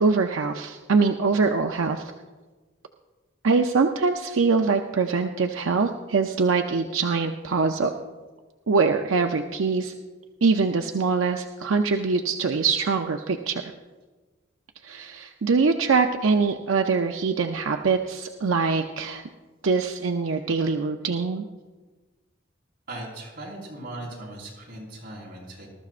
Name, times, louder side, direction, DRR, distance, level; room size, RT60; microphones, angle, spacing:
voice 1, 0.0-2.1 3.4-7.9 8.7-9.9 10.4-13.7 14.8-19.2 19.6-21.4, right 4 dB, 80° right, 5 dB, 0.6 m, -23 dB
voice 2, 22.9-25.7, right 1 dB, 45° right, -4 dB, 4.6 m, -38 dB
20.5 x 13.0 x 2.5 m, 1.3 s
head